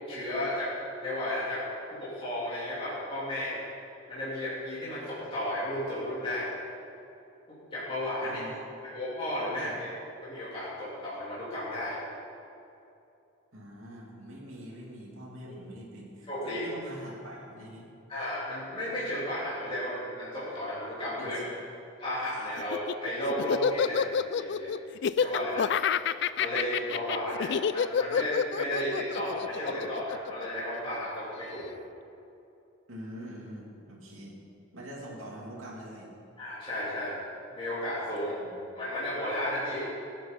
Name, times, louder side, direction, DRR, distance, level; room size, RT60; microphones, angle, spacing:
voice 1, 0.1-0.7 1.0-1.6 1.9-3.6 4.1-6.5 7.7-8.4 8.8-9.9 10.2-12.0 15.4-15.5 16.3-16.6 18.1-21.4 22.0-24.7 25.2-25.7 26.4-31.7 36.4-37.2 37.5-38.3 38.7-39.9, left 1 dB, 25° left, -10 dB, 3.3 m, -33 dB
voice 2, 8.2-8.6 9.5-9.7 13.5-17.9 21.2-21.5 32.9-34.4 34.7-36.1 38.4-38.7, equal, 80° right, -3 dB, 2.7 m, -44 dB
Laughter, 22.6-31.0, left 7 dB, 55° left, 0.3 m, -28 dB
19.5 x 8.8 x 5.2 m, 2.7 s
head